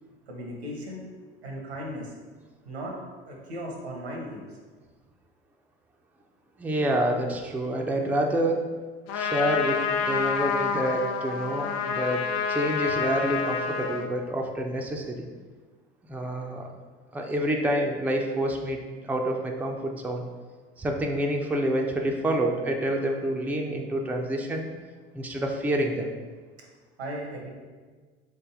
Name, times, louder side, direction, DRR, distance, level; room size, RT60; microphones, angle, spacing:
voice 1, 0.3-1.0 1.4-2.1 2.6-3.0 3.3-4.5 27.0-27.5, equal, 85° right, 0 dB, 0.9 m, -36 dB
voice 2, 6.6-8.7 9.1-15.3 16.1-16.7 17.1-20.2 20.8-24.7 25.1-26.1, right 1 dB, 5° right, 2 dB, 0.4 m, -28 dB
Trumpet, 9.1-14.1, left 6 dB, 55° left, 0.5 m, -28 dB
3.8 x 3.5 x 3.5 m, 1.4 s
figure-of-eight pair, 60°, 31 cm